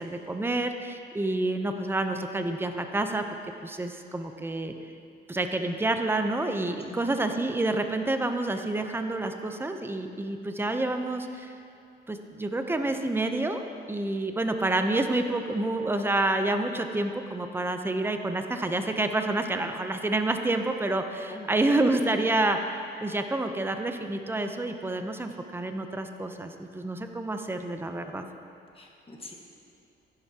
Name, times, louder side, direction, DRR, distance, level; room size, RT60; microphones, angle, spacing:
voice 1, 0.0-3.2 3.6-4.7 5.3-11.5 12.1-13.6 13.9-22.6 23.0-28.3, right 2 dB, 10° right, 6 dB, 0.7 m, -28 dB
voice 2, 21.3-21.8 28.7-29.3, left 2 dB, 30° left, 0 dB, 1.7 m, -45 dB
14.5 x 10.5 x 2.9 m, 2.4 s
cardioid pair, 90°, 20 cm